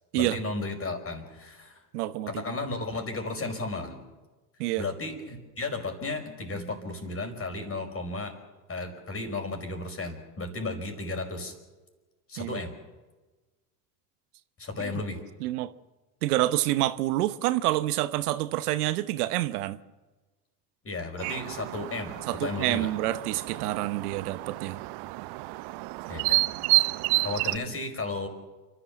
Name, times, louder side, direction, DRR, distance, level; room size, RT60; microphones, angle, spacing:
voice 1, 0.2-1.8 2.3-4.1 4.8-8.3 8.7-11.5 12.3-12.7 14.6-15.2 20.8-22.9 26.1-26.5 27.2-28.3, left 3 dB, 30° left, 5.3 m, -34 dB
voice 2, 1.9-2.5 4.6-4.8 12.4-12.6 14.8-15.0 15.4-15.7 16.2-19.8 22.3-24.8, right 15 dB, 75° right, 1.0 m, -28 dB
sound 1, 21.2-27.6, right 21 dB, 55° right, 0.7 m, -30 dB
29.5 x 12.5 x 7.3 m
hypercardioid pair, 80°, 46 cm